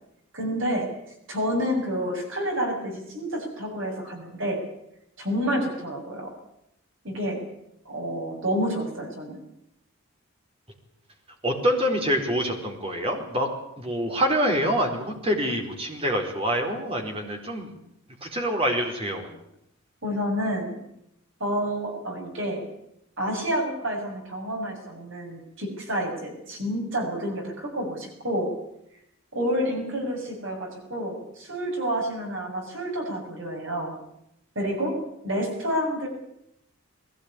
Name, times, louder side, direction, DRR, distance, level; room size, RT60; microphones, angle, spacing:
voice 1, 0.3-0.9 1.3-4.6 5.2-6.3 7.0-7.4 7.9-9.4 20.0-20.8 21.4-22.7 23.2-28.5 29.3-34.0 34.6-36.1, equal, 60° right, 1 dB, 7.1 m, -29 dB
voice 2, 11.4-13.5 13.8-17.7 18.2-19.3, equal, 25° right, 2 dB, 4.3 m, -26 dB
21.5 x 17.5 x 9.9 m, 0.79 s
head